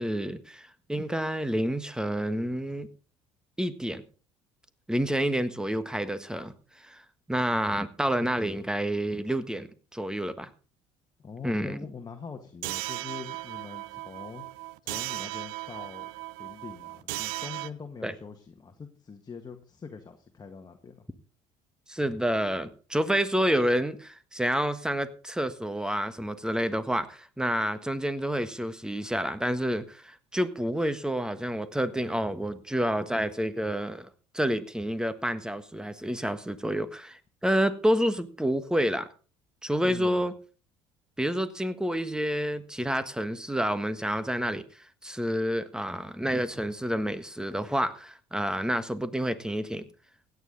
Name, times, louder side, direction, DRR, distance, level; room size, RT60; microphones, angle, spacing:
voice 1, 0.0-2.9 3.6-4.0 4.9-7.0 7.3-10.5 11.4-11.8 18.0-18.1 21.9-34.1 34.3-39.1 39.6-40.3 41.2-49.9, equal, 5° right, 12 dB, 1.5 m, -29 dB
voice 2, 11.2-14.4 14.8-16.1 16.4-21.0 39.8-40.3, left 5 dB, 25° left, 5 dB, 1.8 m, -43 dB
sound 1, 12.6-17.7, right 21 dB, 75° right, 0.6 m, -36 dB
16.0 x 9.7 x 4.0 m, 0.38 s
hypercardioid pair, 70°, 15 cm